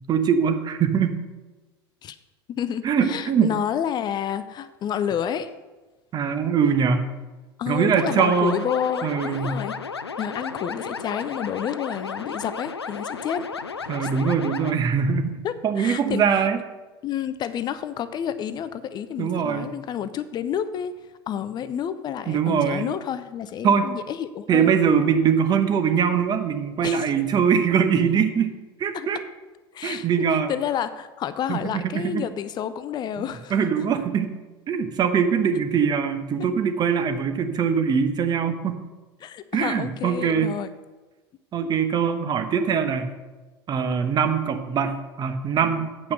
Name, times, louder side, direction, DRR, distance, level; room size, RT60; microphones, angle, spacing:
voice 1, 0.1-1.1 2.8-3.5 6.1-7.1 7.7-8.6 9.0-9.6 13.9-16.6 19.2-19.7 21.8-21.9 22.3-22.8 23.6-23.9 24.5-29.2 29.8-30.5 31.5-32.2 33.2-34.3 34.7-38.8 39.5-40.5 41.5-43.1 43.7-46.1, right 7 dB, 30° right, 8 dB, 1.0 m, -22 dB
voice 2, 2.5-5.5 7.6-9.8 10.2-13.5 14.0-14.1 15.4-16.2 17.0-20.9 21.3-24.7 26.8-27.0 28.9-29.1 29.7-30.1 30.5-33.5 39.2-40.7, left 9 dB, 35° left, 13 dB, 0.5 m, -29 dB
sound 1, 7.9-14.7, left 5 dB, 85° left, 0.4 m, -34 dB
8.6 x 5.7 x 6.4 m, 1.2 s
figure-of-eight pair, 80°, 13 cm